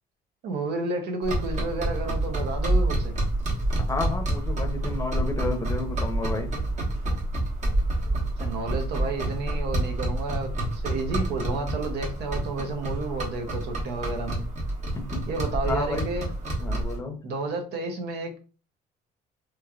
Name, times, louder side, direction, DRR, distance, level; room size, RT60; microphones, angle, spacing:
voice 1, 0.4-3.1 8.4-14.4 15.3-16.3 17.2-18.4, right 3 dB, 75° right, 3 dB, 0.9 m, -31 dB
sound 1, 1.2-17.0, right 1 dB, 45° right, 1.2 m, -28 dB
voice 2, 3.8-6.5 14.9-15.3 15.7-16.1 16.6-17.2, left 3 dB, 20° left, 5 dB, 0.7 m, -31 dB
3.1 x 3.0 x 2.4 m, 0.35 s
cardioid pair, 110°, 17 cm